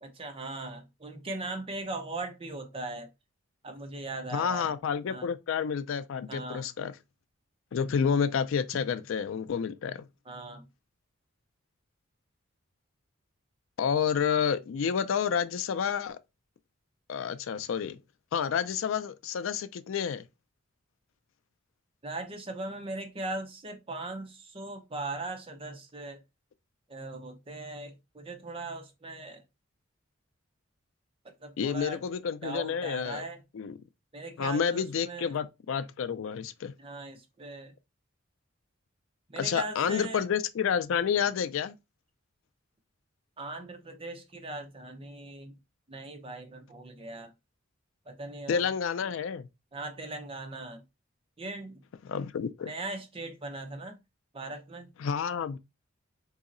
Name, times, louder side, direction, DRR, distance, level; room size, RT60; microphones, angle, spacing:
voice 1, 0.0-3.1 3.6-4.7 5.1-5.3 6.3-6.7 10.3-10.6 22.0-26.2 26.9-29.4 31.4-32.0 32.4-33.4 34.1-35.3 36.8-37.7 39.3-40.2 43.4-45.6 45.9-47.3 48.1-48.7 49.7-50.8 51.4-51.8 52.7-54.0 54.3-54.9, right 2 dB, 25° right, 0.6 m, -39 dB
voice 2, 4.3-6.9 7.7-10.0 13.8-16.2 17.1-18.0 18.3-20.2 31.6-33.2 33.5-33.7 34.4-36.7 39.4-41.7 48.5-49.5 52.1-52.7 55.0-55.6, left 7 dB, 70° left, 0.3 m, -29 dB
3.9 x 2.7 x 2.5 m
head